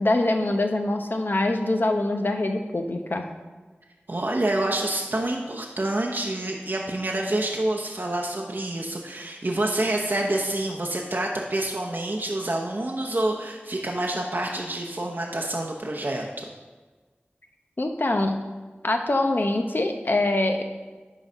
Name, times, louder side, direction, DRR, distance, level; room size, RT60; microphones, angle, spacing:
voice 1, 0.0-3.3 17.8-18.4 18.8-20.6, left 2 dB, 55° left, 4 dB, 0.9 m, -24 dB
voice 2, 4.1-16.5, right 1 dB, 55° right, 0 dB, 0.8 m, -27 dB
10.5 x 4.0 x 5.4 m, 1.3 s
wide cardioid pair, 55°, 4 cm